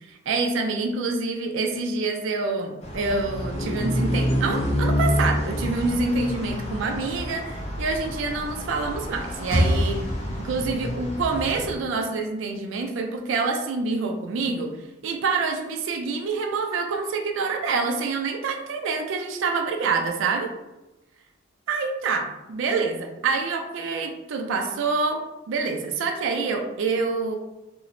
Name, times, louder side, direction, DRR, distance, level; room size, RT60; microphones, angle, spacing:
voice 1, 0.1-10.0 10.4-14.7 15.0-20.5 21.7-25.2 25.5-27.4, right 4 dB, 65° right, 3 dB, 0.3 m, -26 dB
sound 1, 2.8-11.8, equal, 30° left, 0.4 m, -28 dB
sound 2, 8.8-10.9, equal, 75° left, 1.0 m, -27 dB
2.9 x 2.0 x 2.5 m, 0.97 s
head